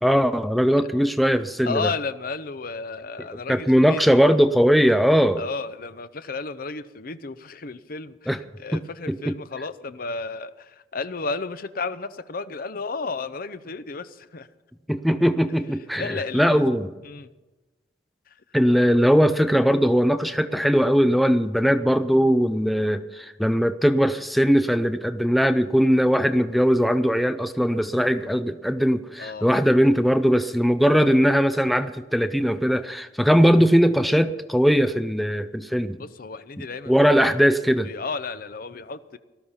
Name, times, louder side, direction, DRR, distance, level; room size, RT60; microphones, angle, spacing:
voice 1, 0.0-1.9 3.5-5.4 8.3-8.4 8.7-8.8 9.1-9.3 14.9-16.9 18.5-36.0 36.9-37.9, equal, ahead, 10 dB, 0.5 m, -20 dB
voice 2, 1.6-4.2 5.4-14.5 16.0-16.6 17.0-17.3 29.2-29.5 36.0-37.0 37.8-39.2, left 4 dB, 55° left, 13 dB, 0.7 m, -33 dB
18.5 x 13.0 x 5.7 m, 1.1 s
head